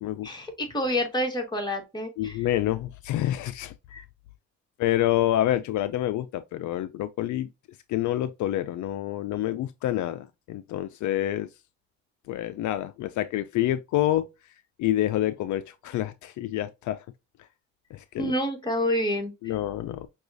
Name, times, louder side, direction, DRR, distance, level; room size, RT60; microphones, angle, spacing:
voice 1, 0.2-2.4 3.9-4.0 18.2-19.3, equal, 15° left, 1.7 m, -28 dB
voice 2, 2.2-3.7 4.8-7.5 7.9-11.5 12.3-14.3 14.8-17.0 17.9-18.3 19.4-20.1, left 13 dB, 75° left, 0.4 m, -27 dB
5.9 x 2.4 x 2.6 m
cardioid pair, 90°, 30 cm